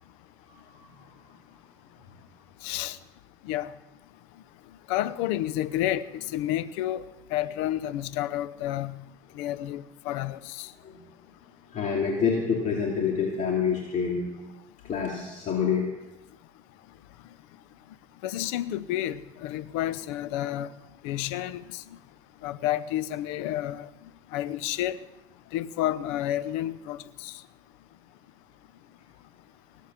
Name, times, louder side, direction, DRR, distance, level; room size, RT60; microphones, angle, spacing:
voice 1, 0.5-0.8 9.3-9.4 10.8-11.0 11.7-14.3 14.9-15.9, left 6 dB, 55° left, -1 dB, 2.7 m, -27 dB
voice 2, 2.6-3.0 3.4-3.7 4.9-7.0 7.3-9.0 9.3-10.7 18.2-20.7 21.0-21.8 22.4-23.9 24.3-25.0 25.5-27.4, left 13 dB, 75° left, 16 dB, 0.7 m, -30 dB
19.5 x 8.4 x 7.5 m, 1.0 s
hypercardioid pair, 80°, 15 cm